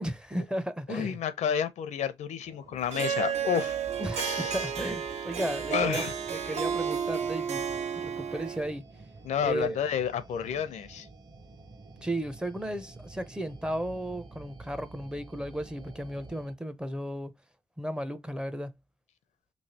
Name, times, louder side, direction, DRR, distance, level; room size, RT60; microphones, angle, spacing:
voice 1, 0.0-1.2 4.0-6.0 6.3-7.6 8.0-8.8 9.4-9.8 12.0-17.3 17.8-18.7, right 1 dB, 5° right, 0.5 m, -34 dB
voice 2, 0.9-3.8 4.2-4.7 5.7-6.1 9.2-11.1, left 8 dB, 80° left, 0.6 m, -30 dB
sound 1, 2.4-16.5, right 3 dB, 35° right, 0.8 m, -50 dB
Harp, 2.9-8.7, right 7 dB, 65° right, 0.7 m, -32 dB
3.1 x 3.1 x 2.7 m
cardioid pair, 110°, 12 cm